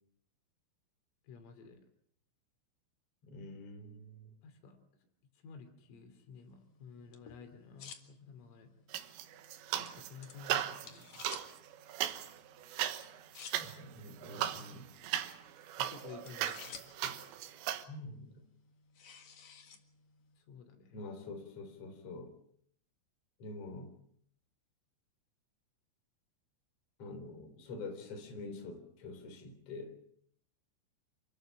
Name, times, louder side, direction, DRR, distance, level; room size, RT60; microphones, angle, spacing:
voice 1, 1.3-1.8 4.4-4.8 5.4-8.7 9.7-11.3 15.8-17.0 20.4-21.0, left 6 dB, 80° left, 7 dB, 5.4 m, -52 dB
voice 2, 3.2-4.3 13.6-14.9 17.0-17.2 17.6-18.4 20.9-22.3 23.4-23.9 27.0-30.0, left 2 dB, 30° left, 5 dB, 4.2 m, -46 dB
sound 1, 6.3-20.4, left 7 dB, 60° left, 1.8 m, -56 dB
sound 2, 8.9-10.1 10.4-17.8, right 12 dB, 70° right, 3.2 m, -38 dB
27.5 x 14.5 x 8.9 m, 0.68 s
omnidirectional pair, 5.8 m